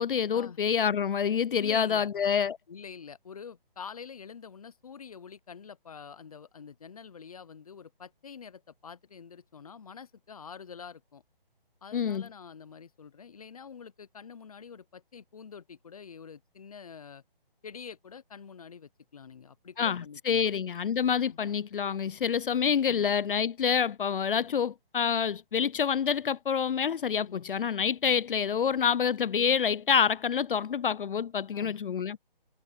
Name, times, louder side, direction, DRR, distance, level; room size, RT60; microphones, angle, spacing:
voice 1, 0.0-2.6 11.9-12.3 19.8-32.2, left 7 dB, 65° left, 0.5 m, -27 dB
voice 2, 1.5-2.1 2.7-11.2 11.8-17.2 17.6-20.5 21.3-21.4 22.8-23.1 27.2-27.5 28.1-28.2 31.5-31.8, left 6 dB, 40° left, 0.8 m, -46 dB
hypercardioid pair, 165°, 29 cm